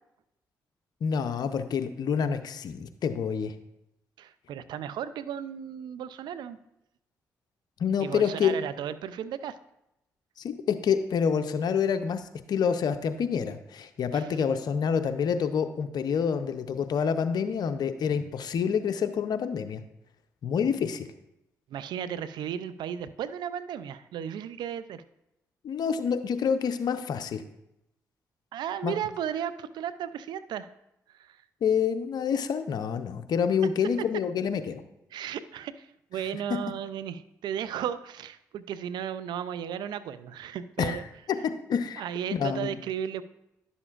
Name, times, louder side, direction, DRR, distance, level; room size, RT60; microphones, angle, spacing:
voice 1, 1.0-3.5 7.8-8.6 10.4-19.8 20.4-21.1 25.6-27.4 28.8-28.9 31.6-34.8 40.8-41.0 41.7-42.0 42.3-42.8, left 7 dB, 65° left, 9 dB, 0.6 m, -27 dB
voice 2, 4.2-6.6 8.0-9.6 14.1-14.4 21.7-25.0 28.5-30.7 31.1-31.4 34.0-34.1 35.1-41.1 42.0-43.2, right 9 dB, 75° right, 14 dB, 0.4 m, -35 dB
10.5 x 7.0 x 2.4 m, 0.85 s
supercardioid pair, 55°, 7 cm